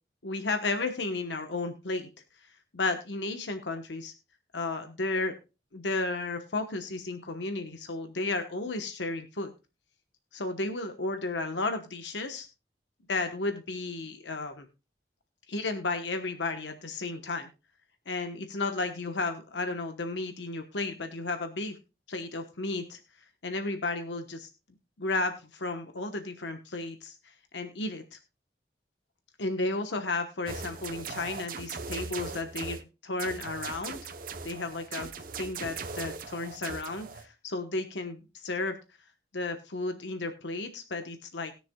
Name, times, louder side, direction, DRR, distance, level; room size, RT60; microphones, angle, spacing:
voice 1, 0.2-2.1 2.7-4.1 4.5-5.4 5.7-9.5 10.3-12.5 13.1-14.7 15.5-17.5 18.1-21.8 22.1-23.0 23.4-24.5 25.0-27.2 27.5-28.2 29.4-34.0 34.4-35.1 35.4-38.8 39.3-41.5, left 3 dB, 85° left, 7 dB, 1.1 m, -33 dB
sound 1, 30.5-32.8 33.2-37.3, right 5 dB, 50° right, 0.8 m, -39 dB
20.0 x 6.8 x 2.3 m, 0.29 s
head